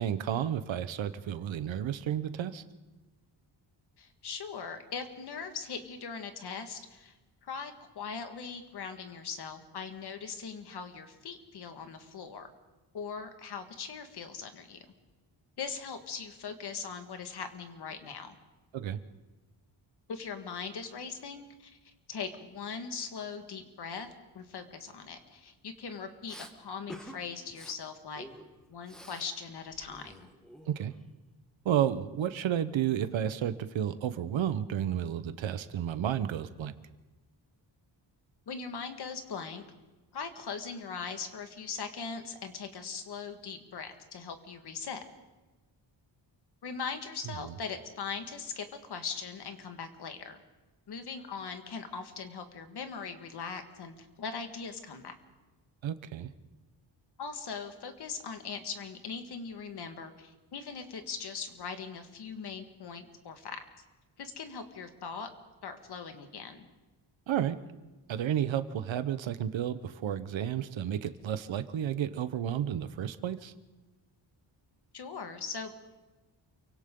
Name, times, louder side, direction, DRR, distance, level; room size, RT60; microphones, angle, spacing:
voice 1, 0.0-2.6 18.7-19.0 30.7-30.9 31.6-36.7 47.4-47.5 55.8-56.3 67.3-67.5 68.1-73.5, right 10 dB, 85° right, 12 dB, 1.1 m, -31 dB
voice 2, 4.0-7.1 7.4-12.5 12.9-14.9 15.6-18.4 20.1-21.7 22.1-24.1 24.3-28.2 28.7-30.3 38.5-39.6 40.1-45.0 46.6-50.4 50.9-55.2 57.2-63.6 64.2-65.3 65.6-66.7 74.9-75.7, left 5 dB, 60° left, 7 dB, 1.9 m, -40 dB
Respiratory sounds, 26.3-26.5 26.9-27.2 27.5-27.8 28.2-29.3 29.6-31.0, equal, ahead, 1.3 m, -49 dB
28.5 x 24.0 x 3.8 m, 1.2 s
wide cardioid pair, 170°, 45 cm